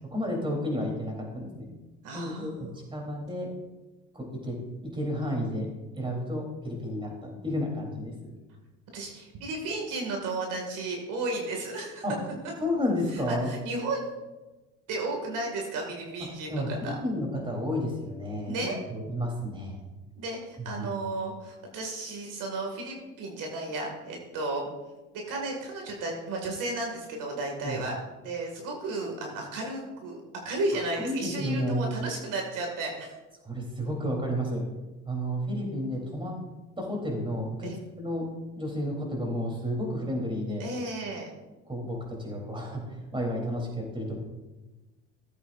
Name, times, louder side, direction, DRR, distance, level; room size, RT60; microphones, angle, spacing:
voice 1, 0.1-1.7 2.1-3.5 4.1-5.7 5.9-8.3 12.0-12.1 12.6-13.5 16.5-19.8 20.6-20.9 27.6-27.8 31.0-31.9 33.4-34.6 35.1-36.4 36.8-38.3 38.6-40.7 41.7-44.2, equal, 15° right, 0 dB, 3.6 m, -31 dB
voice 2, 2.0-2.7 8.9-12.0 13.1-14.2 14.9-17.0 18.4-18.7 20.1-24.7 25.1-28.0 28.2-33.1 37.6-37.8 40.6-41.3, right 2 dB, 65° right, 1 dB, 2.4 m, -33 dB
16.0 x 8.2 x 2.6 m, 1.1 s
supercardioid pair, 90°, 34 cm